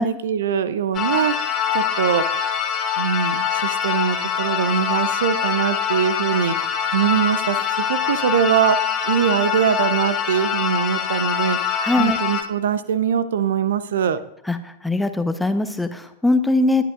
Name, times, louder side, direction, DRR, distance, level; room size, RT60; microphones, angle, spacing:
voice 1, 0.0-2.2 3.0-8.8 9.0-14.2, right 8 dB, 60° right, 14 dB, 0.7 m, -22 dB
sound 1, 0.9-12.4, left 8 dB, 25° left, 1.6 m, -24 dB
voice 2, 11.8-12.2 14.5-16.8, left 2 dB, 5° left, 9 dB, 1.0 m, -21 dB
20.0 x 11.5 x 2.6 m, 0.79 s
figure-of-eight pair, 95°, 0 cm